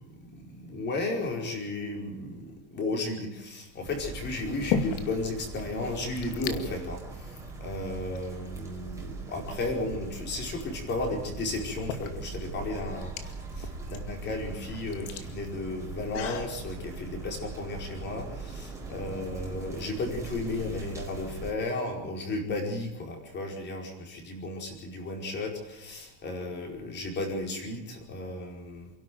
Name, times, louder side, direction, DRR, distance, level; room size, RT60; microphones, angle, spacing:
voice 1, 0.0-28.9, left 2 dB, 20° left, 3 dB, 4.9 m, -34 dB
sound 1, 3.0-3.4 4.2-5.3 5.6-5.7 5.9-6.6 7.4-7.5 8.1-9.0 10.7-10.8 11.5-16.5, left 7 dB, 50° left, 2.4 m, -36 dB
sound 2, 3.8-21.5, right 3 dB, 5° right, 4.3 m, -41 dB
28.5 x 12.0 x 9.4 m, 0.94 s
supercardioid pair, 175°, 47 cm